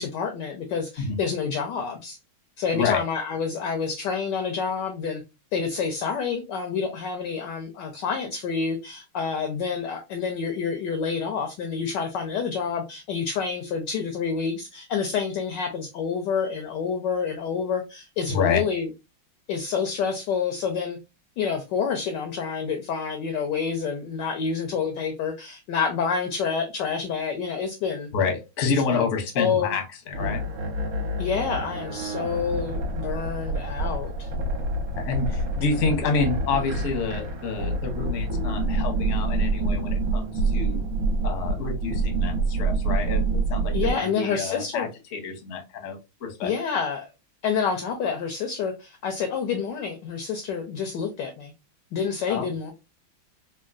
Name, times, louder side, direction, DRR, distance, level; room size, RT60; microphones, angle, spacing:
voice 1, 0.0-2.2 2.6-5.2 5.5-18.9 19.5-21.0 21.4-28.1 28.7-29.1 29.4-29.7 31.2-34.3 43.7-44.9 46.4-47.1 47.4-51.5 51.9-52.7, left 6 dB, 80° left, 1.0 m, -28 dB
voice 2, 18.3-18.6 28.1-30.4 34.9-40.8 41.2-46.5 52.3-52.5, left 5 dB, 60° left, 0.8 m, -28 dB
sound 1, 30.1-43.9, right 2 dB, 65° right, 1.4 m, -27 dB
3.6 x 2.2 x 2.4 m
omnidirectional pair, 2.4 m